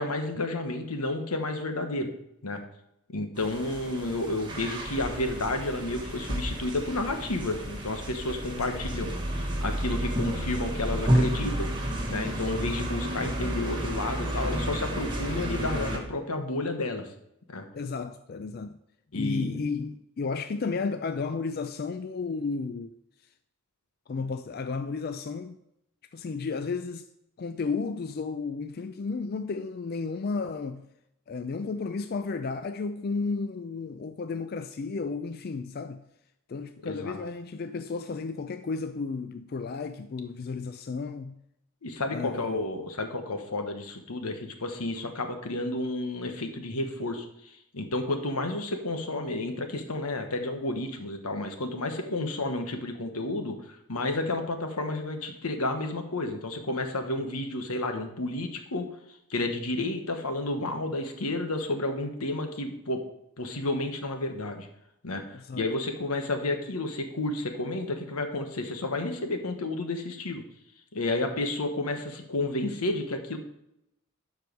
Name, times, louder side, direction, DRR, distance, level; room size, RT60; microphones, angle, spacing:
voice 1, 0.0-2.1 2.4-2.6 3.1-11.7 12.1-17.1 17.5-17.6 19.1-19.6 36.8-37.2 41.8-58.9 59.3-63.0 63.4-64.7 65.0-70.4 70.9-73.4, left 2 dB, 85° left, 1.2 m, -31 dB
sound 1, 3.4-16.0, right 1 dB, 20° right, 1.3 m, -31 dB
voice 2, 8.6-8.9 17.7-18.8 19.1-22.9 24.1-25.6 26.1-27.1 27.4-30.8 31.3-36.0 36.5-41.4 42.1-42.7 65.3-65.6, left 4 dB, 45° left, 0.3 m, -33 dB
12.0 x 4.8 x 4.6 m
head